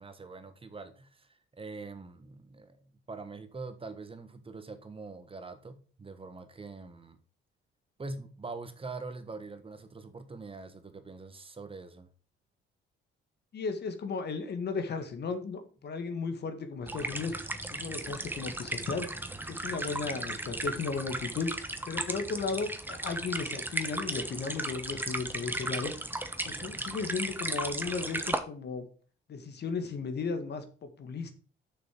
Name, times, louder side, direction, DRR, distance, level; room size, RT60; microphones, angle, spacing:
voice 1, 0.0-7.2 8.0-12.1, right 3 dB, 25° right, 1.4 m, -44 dB
voice 2, 13.5-25.9 26.4-28.9 29.3-31.3, left 4 dB, 55° left, 1.9 m, -35 dB
sound 1, 16.9-28.4, right 1 dB, 10° right, 1.2 m, -36 dB
6.7 x 6.3 x 6.0 m
cardioid pair, 90°, 20 cm